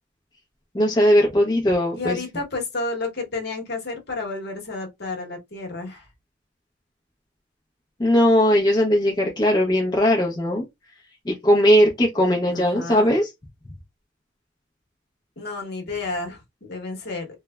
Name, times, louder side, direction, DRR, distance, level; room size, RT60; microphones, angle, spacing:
voice 1, 0.7-2.2 8.0-10.6 11.3-13.3, equal, 20° left, 0.6 m, -19 dB
voice 2, 1.9-6.1 12.5-13.1 15.4-17.3, left 3 dB, 55° left, 1.0 m, -31 dB
3.1 x 2.1 x 2.2 m
head